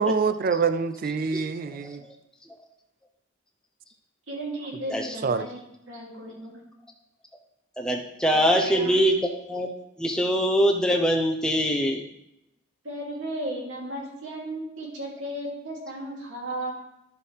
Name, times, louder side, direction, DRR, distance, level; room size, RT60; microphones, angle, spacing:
voice 1, 0.0-2.0 5.2-5.5, right 5 dB, 45° right, 12 dB, 0.4 m, -25 dB
voice 2, 1.7-2.2 4.9-5.1 7.8-9.7 10.0-12.0, equal, 5° left, 1 dB, 0.6 m, -23 dB
voice 3, 4.3-5.6 5.9-6.6 8.3-9.0 12.8-16.7, right 1 dB, 80° right, -4 dB, 2.5 m, -35 dB
11.0 x 6.7 x 3.4 m, 0.84 s
head